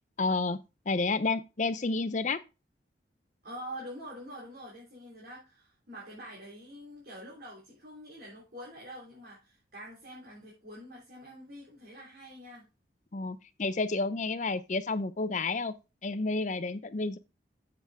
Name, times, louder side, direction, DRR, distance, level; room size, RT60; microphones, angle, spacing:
voice 1, 0.2-0.6 0.9-2.4 13.1-15.7 16.0-17.2, left 3 dB, 40° left, 0.6 m, -30 dB
voice 2, 3.4-12.7, equal, 55° right, 3.7 m, -46 dB
7.9 x 7.4 x 3.6 m
head